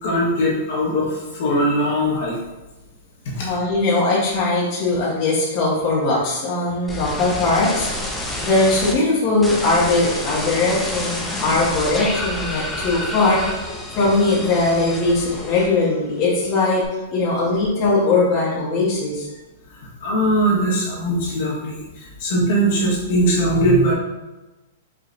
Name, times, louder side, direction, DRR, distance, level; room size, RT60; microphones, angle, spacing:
voice 1, 0.0-2.4 20.0-23.9, right 1 dB, 50° left, -5 dB, 1.2 m, -20 dB
voice 2, 3.3-13.6 13.9-16.8 17.1-19.3, left 2 dB, 25° left, -7 dB, 1.2 m, -20 dB
sound 1, 6.9-8.9 9.4-16.0 16.3-16.9, left 1 dB, 5° left, 0.4 m, -29 dB
4.7 x 3.2 x 2.6 m, 1.1 s
supercardioid pair, 170°, 0 cm